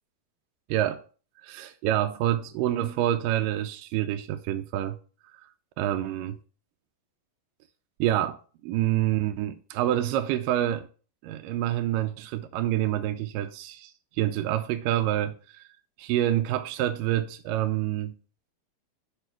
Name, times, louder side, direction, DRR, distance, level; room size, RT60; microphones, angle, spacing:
voice 1, 0.7-1.0 1.4-5.0 5.8-6.4 8.0-8.4 8.6-10.9 11.2-15.6 16.0-18.2, right 13 dB, 80° right, 2.1 m, -27 dB
6.7 x 5.3 x 4.5 m
omnidirectional pair, 4.2 m